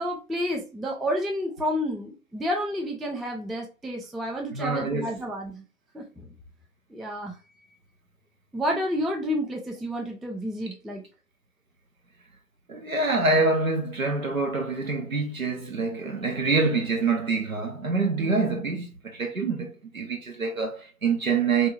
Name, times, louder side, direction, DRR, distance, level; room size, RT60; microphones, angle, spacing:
voice 1, 0.0-5.6 5.9-6.3 6.9-7.4 8.5-11.0, equal, ahead, 0.3 m, -30 dB
voice 2, 4.5-5.1 12.7-21.7, right 3 dB, 60° right, 1.0 m, -26 dB
2.9 x 2.6 x 2.4 m
figure-of-eight pair, 180°, 46 cm